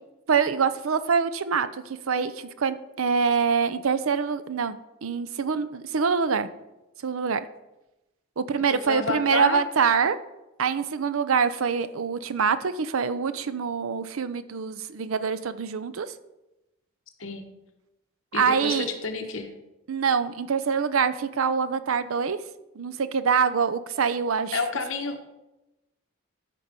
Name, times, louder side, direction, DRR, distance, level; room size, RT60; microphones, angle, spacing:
voice 1, 0.3-6.5 7.0-7.5 8.4-10.2 10.6-16.1 18.3-18.9 19.9-22.4 22.8-24.6, right 6 dB, 80° right, 14 dB, 0.5 m, -25 dB
voice 2, 8.7-9.6 17.2-17.4 18.3-19.5 24.5-25.3, left 3 dB, 70° left, 5 dB, 1.1 m, -30 dB
13.0 x 4.5 x 5.3 m, 0.99 s
head